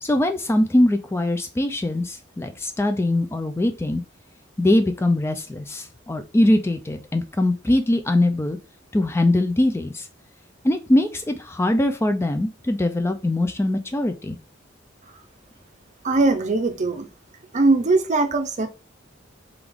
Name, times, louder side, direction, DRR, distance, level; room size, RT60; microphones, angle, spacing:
voice 1, 0.0-4.0 4.6-8.6 8.9-10.1 10.6-14.4, left 1 dB, 15° left, 0.3 m, -22 dB
voice 2, 16.0-17.1 17.5-18.7, right 3 dB, 40° right, 0.6 m, -20 dB
3.7 x 3.4 x 3.5 m
head